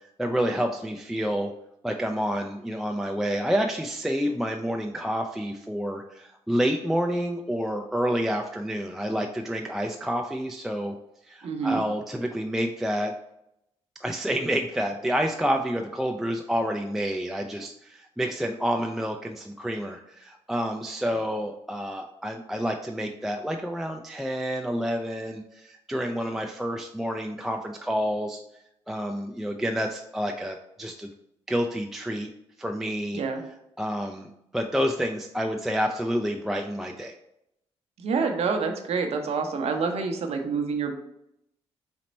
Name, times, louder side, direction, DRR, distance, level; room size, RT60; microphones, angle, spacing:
voice 1, 0.2-1.5 1.8-10.9 11.2-13.1 14.0-28.4 28.9-31.1 31.5-32.3 32.6-33.2 33.8-37.1, equal, 5° right, 3 dB, 0.3 m, -29 dB
voice 2, 11.4-11.8 33.1-33.4 38.0-41.0, right 5 dB, 65° right, 4 dB, 0.7 m, -27 dB
4.2 x 2.1 x 4.0 m, 0.80 s
cardioid pair, 70°, 11 cm